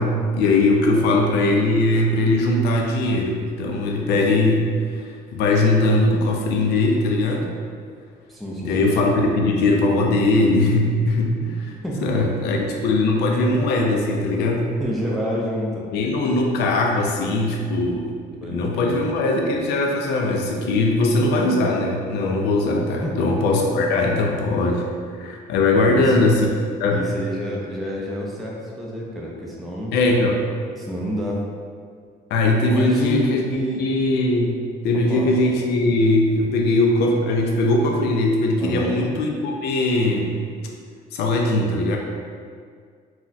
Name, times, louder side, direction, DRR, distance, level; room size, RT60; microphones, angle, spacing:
voice 1, 0.0-4.7 4.9-7.5 8.6-11.7 12.0-14.7 15.9-18.2 18.4-24.9 25.1-26.5 26.8-27.0 29.9-30.4 32.3-34.6 34.8-40.4 41.1-42.0, left 2 dB, 75° left, 0 dB, 0.4 m, -20 dB
voice 2, 0.9-1.2 8.3-8.9 11.8-12.3 14.8-15.9 18.4-19.0 23.0-23.3 24.2-24.4 25.8-26.2 26.9-29.9 30.7-31.5 32.7-33.8 35.1-35.3 38.6-39.0, equal, ahead, -4 dB, 0.4 m, -28 dB
2.3 x 2.1 x 3.9 m, 2.1 s
cardioid pair, 110°, 17 cm